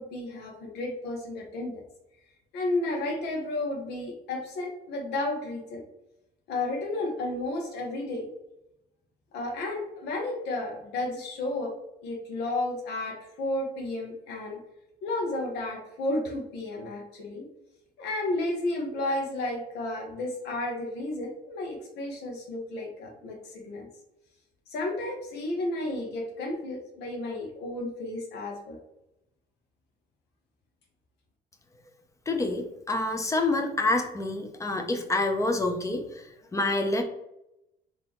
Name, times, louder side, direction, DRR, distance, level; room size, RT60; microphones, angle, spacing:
voice 1, 0.0-1.9 2.5-5.8 6.5-8.3 9.3-11.7 12.0-14.6 15.0-17.4 18.0-23.9 24.7-28.8, left 2 dB, 85° left, 1 dB, 0.9 m, -32 dB
voice 2, 32.3-36.0 36.5-37.0, left 2 dB, 20° left, 5 dB, 0.6 m, -27 dB
3.8 x 2.8 x 3.0 m, 0.86 s
cardioid pair, 110°, 17 cm